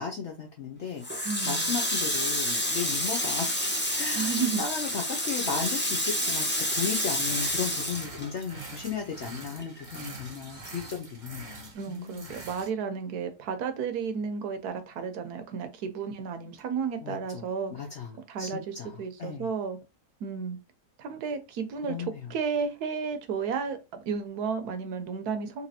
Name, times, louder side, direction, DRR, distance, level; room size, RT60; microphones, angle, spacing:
voice 1, 0.0-3.6 4.0-12.4 17.0-19.5 21.8-22.3, left 6 dB, 60° left, 0.8 m, -36 dB
Water tap faucet, 1.0-8.9 9.2-10.5, left 1 dB, 15° left, 0.4 m, -29 dB
voice 2, 1.2-1.7 4.1-4.6 11.7-17.7 18.3-19.8 20.2-20.6 21.0-22.0 22.3-23.8 24.1-25.7, right 6 dB, 75° right, 1.2 m, -32 dB
sound 1, 6.5-12.7, right 3 dB, 35° right, 1.0 m, -45 dB
4.0 x 3.0 x 2.7 m
omnidirectional pair, 1.7 m